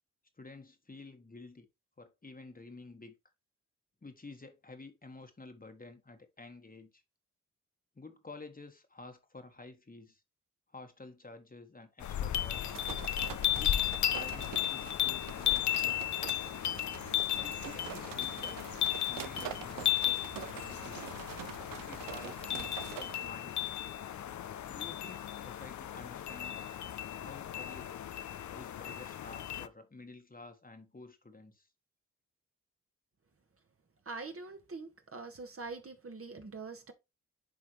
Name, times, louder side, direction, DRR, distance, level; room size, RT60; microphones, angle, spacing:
voice 1, 0.4-1.7 2.0-3.1 4.0-7.0 7.9-10.2 10.7-12.8 13.5-16.1 17.4-18.8 19.1-21.2 21.9-23.8 24.7-26.7 27.2-28.0 28.5-31.7, left 3 dB, 25° left, 1.4 m, -51 dB
sound 1, 12.0-29.7, left 12 dB, 60° left, 0.6 m, -35 dB
sound 2, 12.5-23.3, right 12 dB, 80° right, 0.6 m, -46 dB
voice 2, 34.0-36.9, right 3 dB, 40° right, 1.4 m, -44 dB
10.0 x 3.4 x 3.1 m
supercardioid pair, 40°, 33 cm